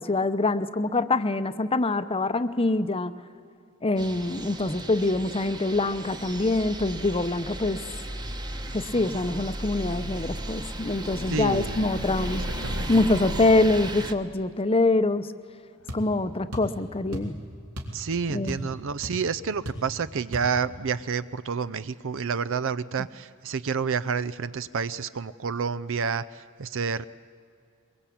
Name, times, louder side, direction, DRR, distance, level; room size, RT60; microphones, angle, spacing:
voice 1, 0.0-3.2 3.8-7.8 8.7-12.4 12.9-15.3 15.9-17.4 18.3-18.6, left 2 dB, 25° left, 12 dB, 0.8 m, -25 dB
sound 1, 4.0-14.1, right 1 dB, 20° right, 1.1 m, -35 dB
sound 2, 10.6-14.1 14.6-14.7 15.8-16.5, left 2 dB, 80° left, 2.0 m, -44 dB
voice 2, 11.3-11.8 12.6-12.9 17.9-27.0, right 5 dB, 60° right, 16 dB, 0.5 m, -29 dB
sound 3, 15.9-16.1 16.5-16.8 17.1-17.4 17.8-18.0 18.3-18.8 19.0-19.2 19.7-19.9 20.3-20.5, equal, 85° right, 3.8 m, -35 dB
23.0 x 22.5 x 8.6 m, 2.4 s
head